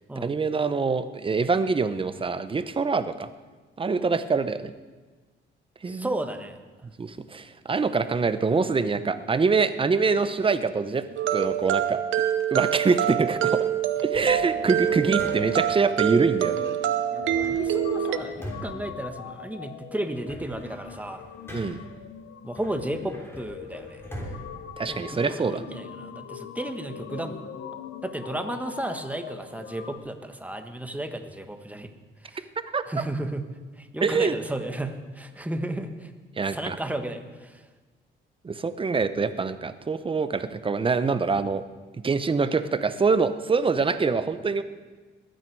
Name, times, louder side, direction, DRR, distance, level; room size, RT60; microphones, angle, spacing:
voice 1, 0.2-3.3 3.8-4.7 5.8-6.1 7.0-11.0 11.3-12.0 12.5-13.7 14.0-16.6 21.5-21.8 24.8-25.6 32.7-32.8 34.0-34.3 36.4-36.8 38.4-41.6 42.0-44.6, right 4 dB, 25° right, 11 dB, 0.8 m, -24 dB
voice 2, 5.8-6.6 17.1-21.3 22.4-24.0 24.9-27.5 28.0-31.9 32.2-32.5 32.8-33.4 33.7-36.1 36.4-37.7, right 1 dB, 5° right, 7 dB, 1.2 m, -33 dB
sound 1, 11.2-18.2, right 11 dB, 75° right, 0.9 m, -26 dB
sound 2, 14.1-15.8 17.2-19.7 20.0-22.0 22.5-25.6, equal, 10° left, 3.4 m, -43 dB
sound 3, 14.3-30.0, left 8 dB, 80° left, 0.9 m, -41 dB
21.5 x 9.2 x 4.7 m, 1.3 s
cardioid pair, 90°, 20 cm